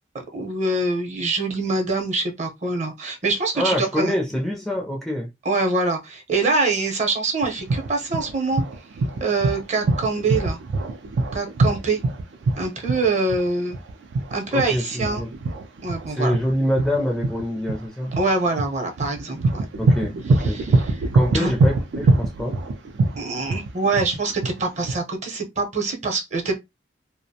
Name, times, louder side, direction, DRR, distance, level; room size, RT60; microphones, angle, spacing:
voice 1, 0.3-4.1 5.4-8.6 9.2-10.6 11.3-12.0 12.6-13.8 14.3-15.2 15.8-16.3 18.2-19.6 20.4-20.9 21.3-21.5 23.2-26.6, right 3 dB, 40° right, 0.7 m, -24 dB
voice 2, 3.6-5.3 14.5-15.3 16.1-18.2 19.8-20.8 21.1-22.7, left 1 dB, ahead, 0.4 m, -25 dB
sound 1, 7.4-24.9, right 2 dB, 75° right, 0.4 m, -23 dB
2.4 x 2.0 x 2.7 m
head